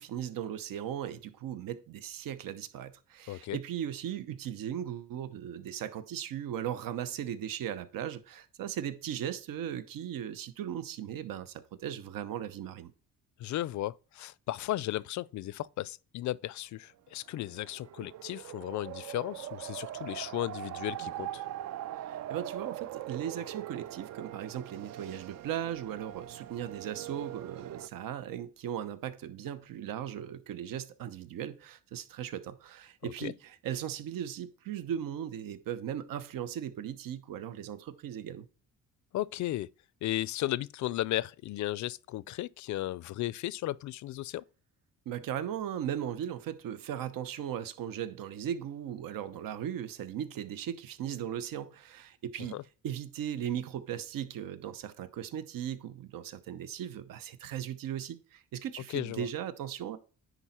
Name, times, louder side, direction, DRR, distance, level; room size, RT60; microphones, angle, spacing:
voice 1, 0.0-12.9 22.0-38.5 45.1-52.6 52.8-60.0, right 10 dB, 75° right, 0.9 m, -37 dB
voice 2, 3.3-3.6 13.4-21.4 33.0-33.3 39.1-39.7 40.0-44.4 52.5-52.6 58.9-59.3, left 15 dB, 60° left, 0.4 m, -35 dB
sound 1, 17.3-27.9, right 12 dB, 55° right, 0.4 m, -42 dB
10.0 x 4.0 x 4.3 m
cardioid pair, 120°, 34 cm